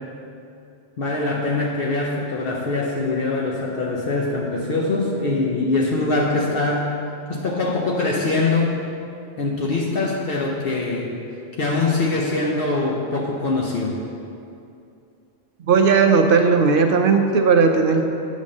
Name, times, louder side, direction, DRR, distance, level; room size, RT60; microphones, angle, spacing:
voice 1, 1.0-6.9 7.3-8.7 9.4-11.1 11.6-13.9, left 3 dB, 60° left, -3 dB, 0.9 m, -23 dB
voice 2, 15.7-18.0, right 5 dB, 60° right, 4 dB, 0.7 m, -16 dB
8.3 x 3.6 x 6.4 m, 2.6 s
omnidirectional pair, 1.1 m